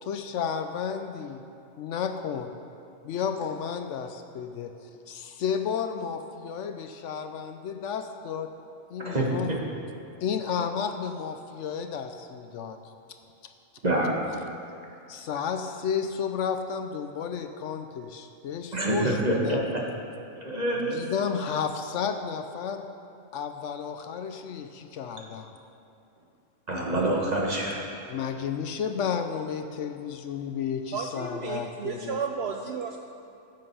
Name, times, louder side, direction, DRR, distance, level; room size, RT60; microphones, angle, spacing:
voice 1, 0.0-1.4 1.8-2.5 3.0-4.7 5.1-8.5 8.9-9.5 10.2-12.8 15.1-19.7 20.7-22.8 23.3-25.5 28.1-32.2, left 7 dB, 70° left, 7 dB, 0.9 m, -32 dB
voice 2, 9.0-9.6 13.8-14.2 18.7-19.8 20.4-21.0 26.7-27.8, right 1 dB, 30° right, -3 dB, 1.6 m, -26 dB
voice 3, 30.9-33.0, right 6 dB, 65° right, 3 dB, 0.7 m, -33 dB
10.5 x 7.7 x 5.6 m, 2.6 s
omnidirectional pair, 1.4 m